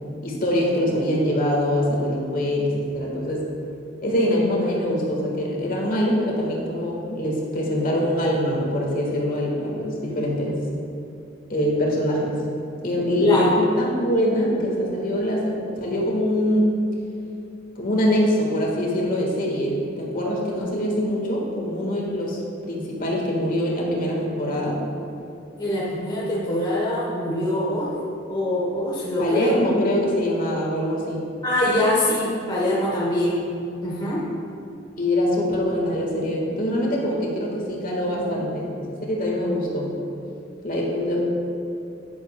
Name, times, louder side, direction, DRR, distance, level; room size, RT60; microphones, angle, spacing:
voice 1, 0.2-3.5 4.0-10.6 11.5-12.4 12.8-16.7 17.7-24.8 29.2-31.2 35.0-39.9 40.6-41.2, equal, 45° left, -2 dB, 1.5 m, -24 dB
voice 2, 25.6-27.9 28.3-29.5 31.4-33.4 33.8-34.2 38.2-38.4, left 1 dB, 25° left, -6 dB, 1.0 m, -23 dB
9.7 x 9.5 x 2.2 m, 2.7 s
head